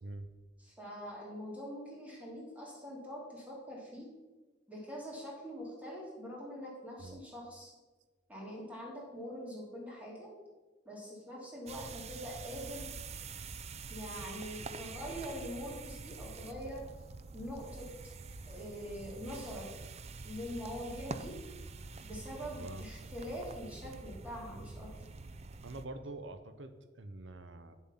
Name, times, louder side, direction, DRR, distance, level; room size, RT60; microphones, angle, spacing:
voice 1, 0.6-4.1 4.7-7.7 8.3-10.3 10.8-12.9 13.9-16.9 17.3-17.9 18.5-19.7 20.2-21.4 22.0-24.9, equal, 10° right, -4 dB, 3.2 m, -44 dB
sound 1, 11.7-25.8, right 4 dB, 35° right, 0.5 m, -46 dB
voice 2, 22.5-22.9 25.6-27.8, right 2 dB, 80° right, 10 dB, 0.7 m, -45 dB
9.4 x 7.2 x 5.7 m, 1.2 s
head